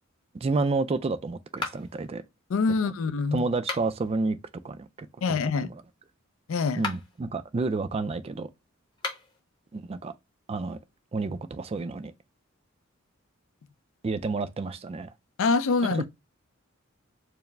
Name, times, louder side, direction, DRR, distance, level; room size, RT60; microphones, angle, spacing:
voice 1, 0.4-2.2 3.3-4.4 4.6-4.9 5.3-5.8 6.8-8.5 9.7-10.1 10.5-10.8 11.1-12.1 14.0-15.1 15.9-16.0, right 3 dB, 30° right, 0.3 m, -30 dB
sound 1, 1.6-2.1 3.5-4.1 6.7-7.2 8.9-9.4, left 4 dB, 20° left, 0.8 m, -35 dB
voice 2, 2.5-3.5 5.2-5.7 6.5-6.8 15.4-16.1, left 4 dB, 65° left, 0.4 m, -25 dB
4.7 x 2.0 x 3.2 m
head